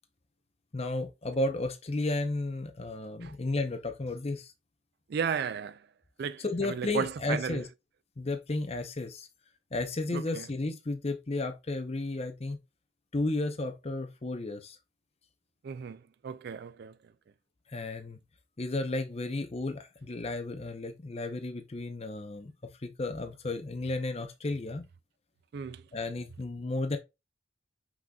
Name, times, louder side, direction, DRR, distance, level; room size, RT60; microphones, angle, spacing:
voice 1, 0.7-4.5 6.4-7.7 8.2-9.3 9.7-12.6 13.1-14.8 17.7-18.2 18.6-22.5 22.8-24.9 25.9-27.0, left 2 dB, 30° left, 0.6 m, -33 dB
voice 2, 5.1-5.8 6.2-7.6 10.1-10.4 15.6-16.9 25.5-25.8, right 7 dB, 55° right, 0.3 m, -34 dB
6.0 x 3.9 x 2.3 m
head